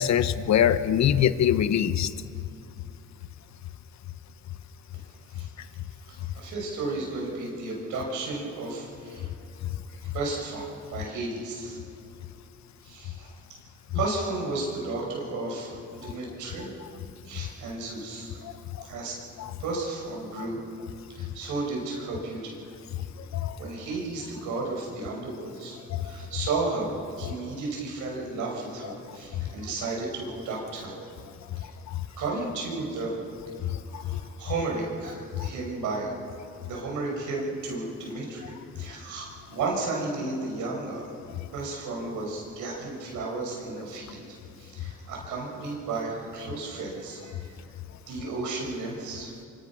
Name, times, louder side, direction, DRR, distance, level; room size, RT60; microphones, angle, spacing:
voice 1, 0.0-2.1 19.4-19.5 23.4-23.6 26.0-26.1 33.9-34.0 35.4-35.5, left 9 dB, 65° left, 13 dB, 1.0 m, -23 dB
voice 2, 6.1-9.3 10.1-11.8 12.8-13.3 13.9-16.7 17.2-18.4 18.8-19.1 19.6-20.6 21.2-22.5 23.6-25.8 26.0-31.0 31.6-31.7 32.2-33.1 33.9-36.1 36.6-41.1 41.5-47.5 48.1-49.3, right 3 dB, 85° right, -1 dB, 6.5 m, -33 dB
25.5 x 25.0 x 6.2 m, 2.6 s
cardioid pair, 90°, 30 cm